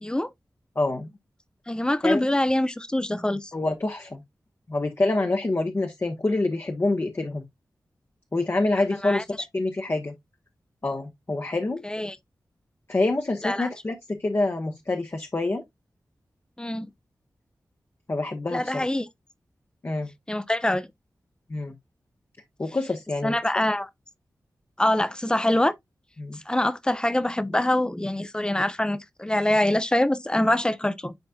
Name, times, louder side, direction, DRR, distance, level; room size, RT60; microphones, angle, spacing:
voice 1, 0.0-0.3 1.7-3.5 8.7-9.2 11.8-12.2 13.4-13.7 16.6-16.9 18.5-19.1 20.3-20.9 23.2-23.9 24.8-25.7 26.5-31.1, left 1 dB, 10° left, 0.7 m, -24 dB
voice 2, 0.7-1.1 2.0-2.2 3.5-4.2 4.7-7.4 8.3-9.2 9.5-10.1 10.8-11.8 12.9-15.6 18.1-18.8 19.8-20.1 21.5-21.8 22.6-23.3 26.2-26.4, left 2 dB, 35° left, 1.0 m, -26 dB
10.5 x 4.2 x 2.3 m
wide cardioid pair, 70°, 7 cm